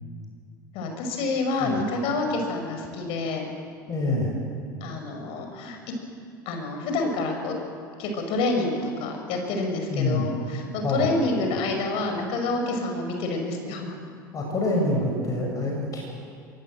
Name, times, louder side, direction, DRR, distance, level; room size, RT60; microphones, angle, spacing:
voice 1, 0.7-3.4 4.8-5.8 6.5-7.6 8.0-14.0, left 2 dB, 60° left, 4 dB, 5.7 m, -28 dB
voice 2, 3.9-4.3 9.9-10.3 10.8-11.1 14.3-16.1, left 2 dB, 30° left, 0 dB, 6.7 m, -26 dB
23.0 x 19.0 x 7.9 m, 2.3 s
hypercardioid pair, 75°, 11 cm